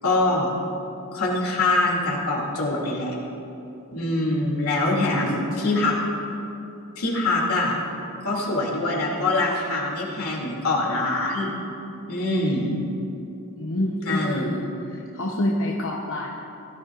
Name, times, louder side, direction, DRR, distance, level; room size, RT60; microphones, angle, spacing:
voice 1, 0.0-0.5 1.1-3.1 3.9-5.9 7.0-7.8 8.2-11.5 12.1-12.7 14.0-14.5, left 2 dB, 80° left, -3 dB, 2.7 m, -24 dB
voice 2, 13.6-16.3, left 1 dB, 60° left, -2 dB, 0.9 m, -27 dB
17.5 x 13.0 x 2.5 m, 2.9 s
head